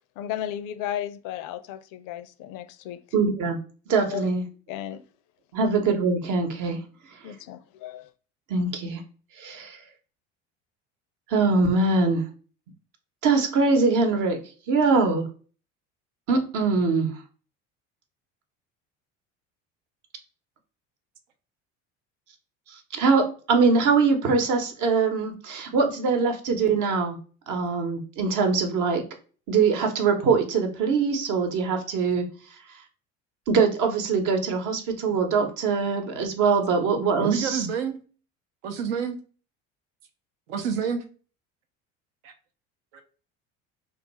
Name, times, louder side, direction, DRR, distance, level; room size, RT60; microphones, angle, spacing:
voice 1, 0.2-3.0 4.1-4.3 4.7-5.0 7.2-8.1, left 11 dB, 60° left, 0.5 m, -34 dB
voice 2, 3.1-3.6 3.9-4.4 5.5-6.8 8.5-9.0 9.4-9.8 11.3-12.2 13.2-14.4 14.7-15.2 16.3-17.1 22.7-27.2 27.5-29.0 29.5-32.2 33.5-37.7, right 4 dB, 60° right, 0.9 m, -23 dB
voice 3, 37.2-38.0 38.6-39.2 40.5-41.0 42.2-42.3 42.9-43.0, right 7 dB, 80° right, 0.7 m, -28 dB
2.4 x 2.3 x 3.9 m
hypercardioid pair, 75°, 36 cm